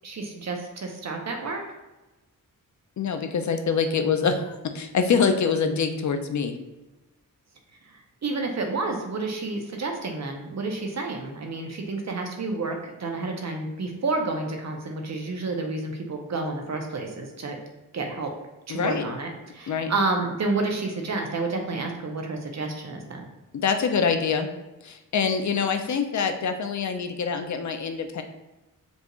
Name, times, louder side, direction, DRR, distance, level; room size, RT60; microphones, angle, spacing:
voice 1, 0.0-1.6 8.2-17.6 17.9-18.3 18.7-23.3, right 3 dB, 50° right, 2 dB, 0.8 m, -30 dB
voice 2, 3.0-6.6 18.7-19.1 19.7-19.9 23.5-24.5 24.8-28.2, left 6 dB, 55° left, 7 dB, 0.5 m, -25 dB
5.3 x 2.5 x 3.0 m, 1.1 s
wide cardioid pair, 105°, 34 cm